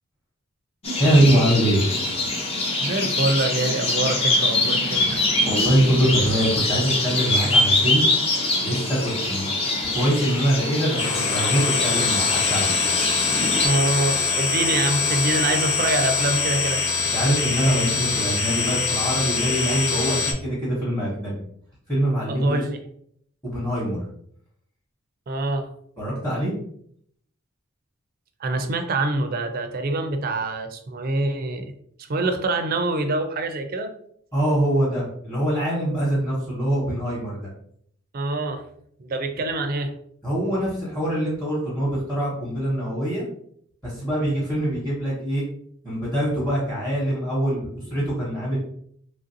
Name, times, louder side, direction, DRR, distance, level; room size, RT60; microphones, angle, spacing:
sound 1, 0.8-13.7, left 2 dB, 30° left, 0.5 m, -24 dB
voice 1, 1.0-1.8 5.4-8.1 8.6-9.5 9.9-12.8 17.1-21.4 21.9-22.6 23.4-24.0 26.0-26.5 34.3-37.5 40.2-43.2 43.8-45.4 45.8-48.6, right 1 dB, 10° left, -8 dB, 1.0 m, -23 dB
voice 2, 2.8-5.3 13.6-16.8 22.3-22.8 25.3-25.7 28.4-31.7 32.1-33.9 38.1-38.6 39.0-39.9, right 2 dB, 45° right, 7 dB, 0.4 m, -25 dB
sound 2, 11.0-20.3, left 5 dB, 75° left, 0.6 m, -23 dB
3.1 x 2.5 x 2.7 m, 0.66 s
head